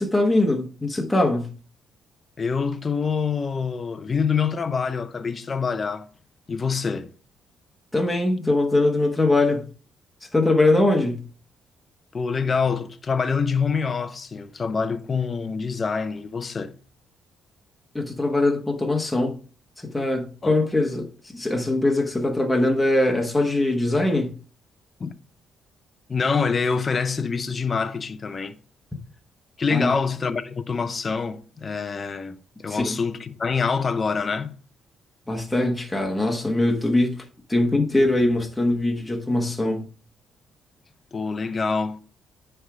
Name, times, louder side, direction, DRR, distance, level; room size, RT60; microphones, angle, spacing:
voice 1, 0.0-1.5 7.9-9.7 10.2-11.2 17.9-19.4 19.8-24.3 29.7-29.9 32.7-33.0 35.3-39.8, left 2 dB, 10° left, 1.3 m, -22 dB
voice 2, 2.4-6.1 6.5-7.1 12.1-16.8 20.4-20.6 25.0-25.1 26.1-28.6 29.6-34.6 41.1-42.0, left 5 dB, 35° left, 0.6 m, -26 dB
9.7 x 3.5 x 4.9 m
cardioid pair, 90°, 0 cm